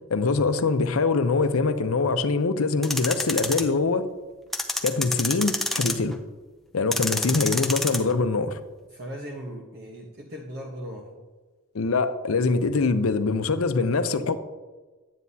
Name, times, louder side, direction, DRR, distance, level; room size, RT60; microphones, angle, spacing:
voice 1, 0.1-4.1 4.8-6.2 6.7-8.6 11.7-14.4, left 4 dB, 85° left, 0.6 m, -23 dB
sound 1, 2.8-3.6 4.5-6.1 6.9-8.0, left 1 dB, ahead, 0.5 m, -27 dB
voice 2, 8.9-11.2, equal, 45° right, 1.1 m, -38 dB
10.5 x 9.3 x 2.8 m
head